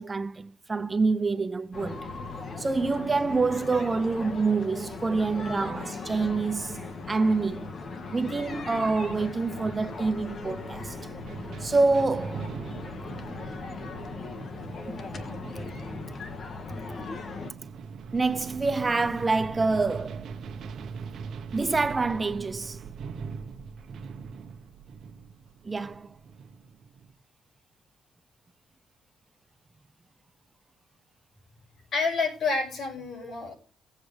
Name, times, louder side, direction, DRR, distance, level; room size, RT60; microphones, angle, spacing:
voice 1, 0.0-2.1 2.6-7.7 8.1-11.0 11.6-12.6 14.9-15.2 18.1-20.3 21.5-22.8 25.6-26.2, right 3 dB, 25° right, 0.6 m, -27 dB
sound 1, 1.7-17.5, left 3 dB, 45° left, 1.7 m, -38 dB
sound 2, 9.6-27.1, right 5 dB, 60° right, 1.1 m, -41 dB
voice 2, 31.9-33.5, left 4 dB, 60° left, 6.4 m, -28 dB
17.5 x 8.1 x 3.4 m
cardioid pair, 90°, 0 cm